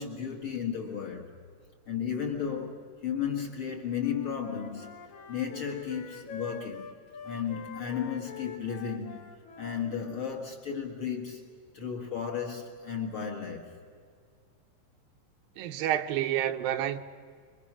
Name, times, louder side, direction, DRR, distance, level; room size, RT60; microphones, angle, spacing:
voice 1, 0.0-1.3 1.9-4.9 5.3-6.9 7.2-9.2 9.6-11.4 11.7-13.7, left 7 dB, 45° left, 2.1 m, -34 dB
Wind instrument woodwind instrument, 4.0-10.3, left 6 dB, 60° left, 2.6 m, -45 dB
voice 2, 15.6-17.0, right 11 dB, 80° right, 2.6 m, -29 dB
27.0 x 24.0 x 6.2 m
omnidirectional pair, 4.2 m